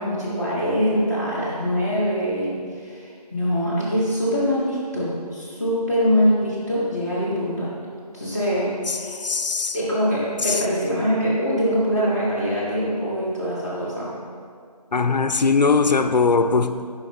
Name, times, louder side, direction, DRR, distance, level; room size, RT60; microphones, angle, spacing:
voice 1, 0.0-7.7 8.1-9.2 9.7-14.1, equal, 25° right, 1.3 m, -23 dB
voice 2, 8.9-9.8 10.4-10.6 14.9-16.9, left 4 dB, 90° left, 0.4 m, -20 dB
7.1 x 5.2 x 3.2 m
figure-of-eight pair, 180°, 21 cm